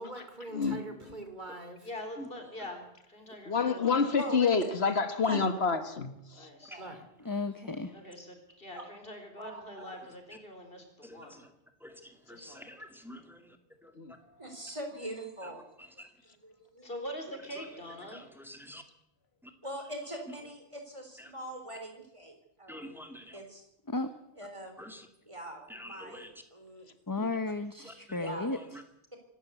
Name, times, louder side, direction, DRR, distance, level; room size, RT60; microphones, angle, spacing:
voice 1, 0.0-1.9 6.8-7.0, right 2 dB, 50° right, 7 dB, 3.1 m, -43 dB
voice 2, 1.8-4.0 6.3-6.8 7.9-11.4 12.3-12.6 16.8-18.2, left 1 dB, 65° left, 4 dB, 4.5 m, -44 dB
voice 3, 3.5-6.5 14.0-14.1, left 5 dB, 85° left, 10 dB, 1.8 m, -28 dB
voice 4, 4.2-4.5 5.3-5.4 6.6-7.0 8.7-8.8 9.4-10.0 14.2-15.6 16.4-16.9 19.6-23.0 23.3-23.7 24.4-24.8 25.3-26.9 28.1-28.5, right 1 dB, 30° right, 4 dB, 4.1 m, -42 dB
voice 5, 7.2-8.0 23.9-24.1 27.1-28.6, left 3 dB, 20° left, 10 dB, 0.9 m, -33 dB
voice 6, 11.0-11.5 11.8-13.6 13.8-13.9 17.6-18.8 19.4-19.5 21.2-21.3 22.7-23.4 24.8-25.1 25.7-26.3 27.2-27.3 27.8-27.9 28.5-28.8, equal, ahead, 6 dB, 2.2 m, -47 dB
25.5 x 13.0 x 8.2 m, 0.79 s
omnidirectional pair, 1.0 m